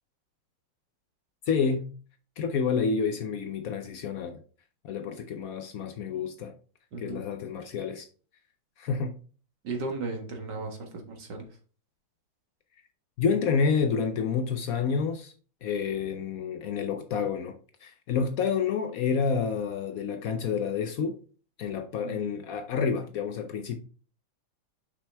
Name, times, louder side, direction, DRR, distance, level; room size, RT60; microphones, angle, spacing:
voice 1, 1.5-1.9 2.4-4.4 4.8-6.5 7.0-8.0 8.8-9.2 13.2-15.3 15.6-21.2 21.6-23.8, left 6 dB, 90° left, 0.7 m, -29 dB
voice 2, 6.9-7.2 9.6-11.5 22.0-22.2, right 3 dB, 55° right, 2.0 m, -35 dB
6.5 x 5.9 x 3.4 m
omnidirectional pair, 2.3 m